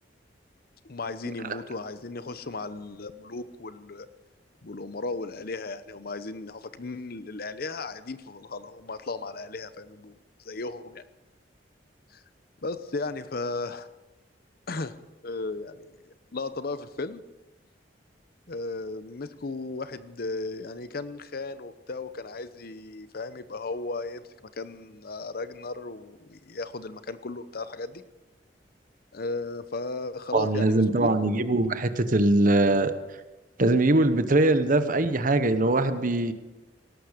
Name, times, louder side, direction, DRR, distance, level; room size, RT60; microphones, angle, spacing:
voice 1, 0.8-4.1 4.6-10.2 10.4-11.0 12.1-12.2 12.6-13.9 14.7-15.0 15.2-17.2 18.5-24.2 24.6-28.0 29.1-31.5, left 3 dB, 55° left, 13 dB, 0.8 m, -35 dB
voice 2, 30.3-32.9 33.6-36.3, right 2 dB, 50° right, 10 dB, 1.1 m, -22 dB
17.5 x 13.0 x 5.1 m, 1.0 s
head